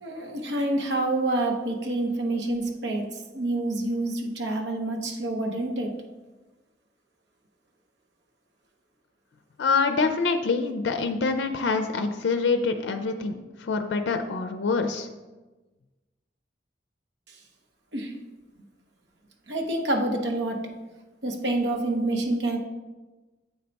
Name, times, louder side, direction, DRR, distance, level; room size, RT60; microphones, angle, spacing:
voice 1, 0.0-6.0 17.9-18.1 19.5-20.7 21.2-22.6, right 2 dB, 80° right, 2 dB, 0.9 m, -27 dB
voice 2, 9.6-15.1, left 4 dB, 85° left, 8 dB, 0.4 m, -25 dB
8.1 x 3.3 x 4.0 m, 1.2 s
head